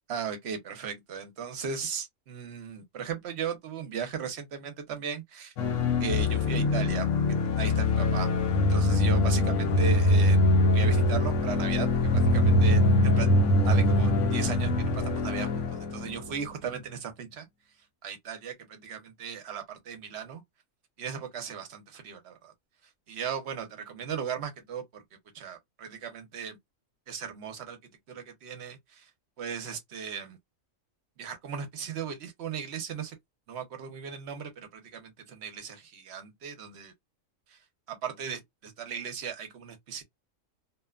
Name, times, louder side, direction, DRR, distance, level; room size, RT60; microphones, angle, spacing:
voice 1, 0.1-5.5 6.0-7.1 7.6-8.3 8.7-10.4 10.7-11.9 12.1-13.3 13.6-17.5 18.0-20.4 21.0-22.5 23.1-25.0 25.3-26.6 27.1-27.8 28.1-29.1 29.4-30.4 31.2-33.2 33.5-36.9 37.9-40.0, right 7 dB, 60° right, 0.9 m, -37 dB
sound 1, 5.6-16.3, left 2 dB, 70° left, 0.9 m, -23 dB
2.8 x 2.1 x 2.4 m
omnidirectional pair, 1.4 m